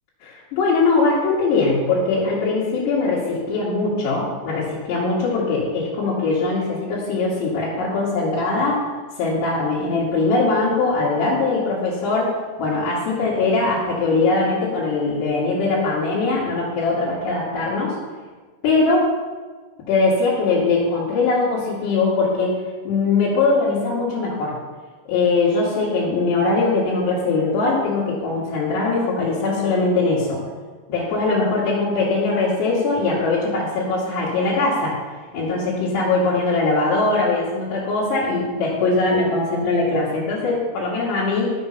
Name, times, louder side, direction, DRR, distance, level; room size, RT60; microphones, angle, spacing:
voice 1, 0.2-8.9 9.2-18.0 18.6-19.1 19.9-22.6 22.9-24.6 25.1-30.5 30.9-35.0 35.3-41.5, left 3 dB, 70° left, -9 dB, 4.2 m, -21 dB
13.0 x 6.9 x 5.6 m, 1.4 s
omnidirectional pair, 5.1 m